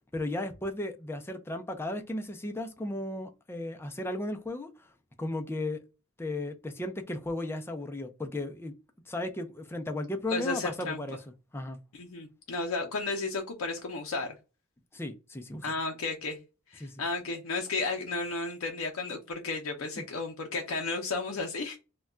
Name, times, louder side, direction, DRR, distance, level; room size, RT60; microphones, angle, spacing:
voice 1, 0.1-4.9 5.2-5.8 6.2-8.7 9.1-11.2 11.5-11.8 14.9-15.6 16.8-17.0, left 1 dB, 10° left, 0.4 m, -35 dB
voice 2, 10.3-11.0 11.9-14.3 15.6-16.4 16.7-21.8, left 3 dB, 75° left, 0.5 m, -33 dB
2.2 x 2.2 x 3.7 m
head